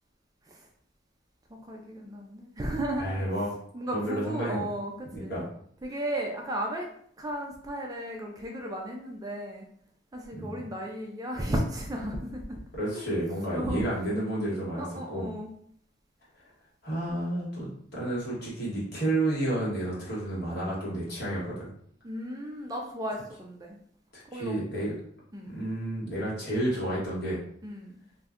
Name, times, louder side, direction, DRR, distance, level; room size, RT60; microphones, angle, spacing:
voice 1, 1.5-3.2 3.7-5.3 5.8-6.9 7.2-9.6 10.1-12.6 12.9-13.0 13.5-14.0 14.8-15.5 17.1-17.2 22.0-23.8 24.3-24.5 25.3-25.5 27.6-28.0, right 1 dB, 20° right, 1 dB, 0.4 m, -34 dB
voice 2, 3.0-3.5 3.9-4.7 5.1-5.5 10.3-10.6 12.7-15.3 16.8-21.7 24.1-24.9 25.4-27.4, right 1 dB, 55° left, -7 dB, 1.4 m, -31 dB
2.6 x 2.2 x 3.6 m, 0.64 s
head